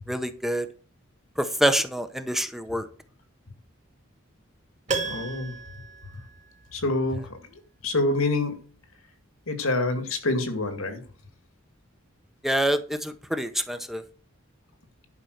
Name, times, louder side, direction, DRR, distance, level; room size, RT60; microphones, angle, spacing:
voice 1, 0.1-0.7 1.4-2.9 12.4-14.0, right 1 dB, ahead, 8 dB, 0.8 m, -26 dB
Piano, 4.9-7.0 7.3-7.4, right 4 dB, 35° right, 2.3 m, -34 dB
voice 2, 5.0-5.5 6.7-8.6 9.5-11.0, left 2 dB, 80° left, 8 dB, 2.2 m, -27 dB
11.0 x 5.6 x 6.5 m, 0.37 s
head